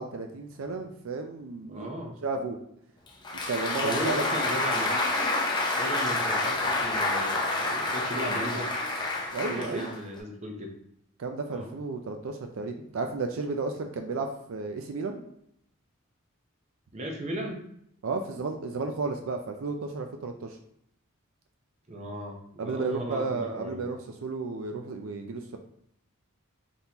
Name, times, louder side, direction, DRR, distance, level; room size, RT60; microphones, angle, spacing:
voice 1, 0.0-1.9 2.2-2.6 3.5-4.2 9.3-9.9 11.2-15.2 18.0-20.6 22.6-25.6, right 3 dB, 70° right, 4 dB, 0.4 m, -33 dB
voice 2, 1.7-2.1 3.8-4.9 5.8-8.7 9.5-10.7 11.5-11.7 16.9-17.6 21.9-23.9, equal, 30° right, 2 dB, 0.7 m, -36 dB
Applause, 3.1-10.2, left 2 dB, 20° left, 0.7 m, -28 dB
4.1 x 3.6 x 2.9 m, 0.72 s
head